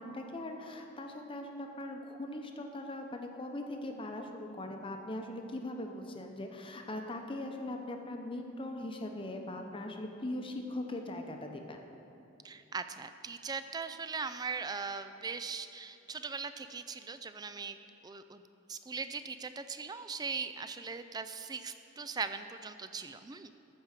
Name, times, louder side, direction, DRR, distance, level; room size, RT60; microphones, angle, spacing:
voice 1, 0.0-11.8, left 1 dB, 25° left, 3 dB, 0.8 m, -40 dB
voice 2, 12.4-17.8 18.0-18.4 18.7-23.5, right 5 dB, 20° right, 10 dB, 0.3 m, -40 dB
14.0 x 4.8 x 6.5 m, 2.9 s
head